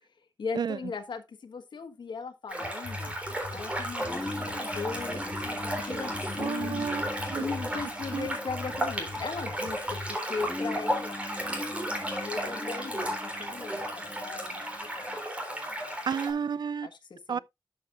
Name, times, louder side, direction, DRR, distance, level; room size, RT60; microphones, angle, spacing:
voice 1, 0.4-3.1 3.5-6.9 7.4-11.2 12.1-15.2 15.5-16.3 16.8-17.4, left 5 dB, 75° left, 1.4 m, -39 dB
sound 1, 2.5-16.3, equal, 15° right, 3.5 m, -34 dB
sound 2, 2.6-10.1, left 2 dB, 55° left, 3.4 m, -43 dB
sound 3, 4.0-15.2, left 2 dB, 15° left, 1.6 m, -42 dB
voice 2, 6.4-7.4 8.1-8.3 16.1-16.9 17.3-17.4, right 6 dB, 65° right, 0.4 m, -31 dB
12.0 x 6.6 x 2.5 m
wide cardioid pair, 120°, 8 cm